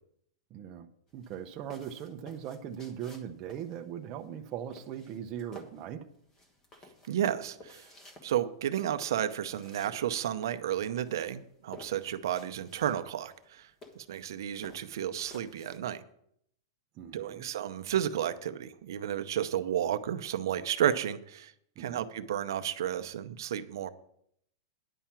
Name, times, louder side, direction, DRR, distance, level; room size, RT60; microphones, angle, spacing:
voice 1, 0.5-0.9 1.1-6.0 17.0-17.5 21.8-22.0, right 9 dB, 30° right, 5 dB, 0.7 m, -40 dB
sound 1, 1.1-15.8, left 2 dB, 20° left, 1.3 m, -54 dB
voice 2, 7.1-7.9 8.2-13.7 14.0-16.0 17.1-21.5 21.8-23.9, right 10 dB, 70° right, 10 dB, 0.7 m, -32 dB
10.0 x 5.7 x 7.3 m, 0.71 s
supercardioid pair, 165°, 2 cm